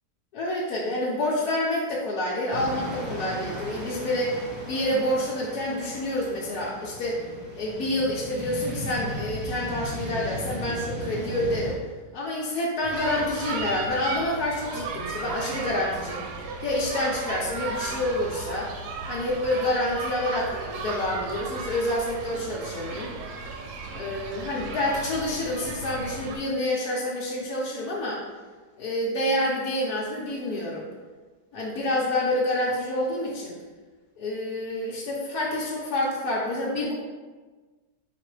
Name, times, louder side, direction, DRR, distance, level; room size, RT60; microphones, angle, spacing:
voice 1, 0.3-7.2 7.5-11.8 12.1-16.2 16.6-18.7 19.1-23.1 23.9-28.2 28.8-30.9 31.5-33.5 34.2-36.9, left 1 dB, 70° left, -5 dB, 1.2 m, -28 dB
sound 1, 2.5-11.7, equal, 40° right, 1.1 m, -36 dB
sound 2, 12.8-26.4, right 3 dB, 75° right, 1.1 m, -35 dB
4.9 x 2.9 x 3.1 m, 1.3 s
omnidirectional pair, 1.8 m